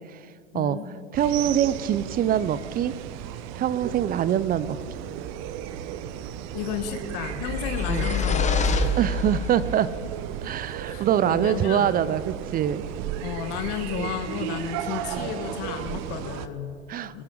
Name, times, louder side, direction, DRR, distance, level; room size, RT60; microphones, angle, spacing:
voice 1, 0.5-0.9 6.5-9.0 10.7-12.0 13.2-16.8 17.1-17.2, left 10 dB, 55° left, 6 dB, 1.4 m, -33 dB
voice 2, 1.1-2.9 3.5-4.8 7.9-8.1 9.0-9.9 10.4-12.8 14.0-14.1 15.1-15.3 16.9-17.2, right 10 dB, 25° right, 17 dB, 0.5 m, -24 dB
sound 1, 1.1-16.5, right 10 dB, 45° right, 0.9 m, -34 dB
sound 2, 7.3-9.7, left 4 dB, 20° left, 1.2 m, -26 dB
21.5 x 12.5 x 3.9 m, 2.2 s
hypercardioid pair, 95°, 36 cm